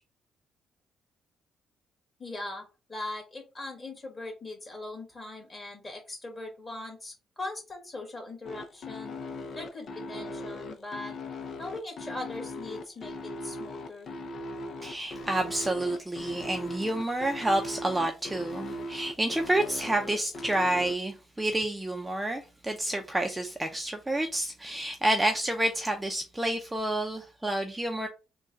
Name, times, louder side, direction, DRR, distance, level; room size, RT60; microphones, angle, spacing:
voice 1, 2.2-9.1 9.5-11.1 11.6-14.1, left 2 dB, 25° left, 2.0 m, -40 dB
sound 1, 8.4-20.9, left 1 dB, 55° left, 0.7 m, -39 dB
voice 2, 14.8-28.1, right 1 dB, 10° right, 0.6 m, -29 dB
3.7 x 2.3 x 3.9 m
cardioid pair, 90°, 0 cm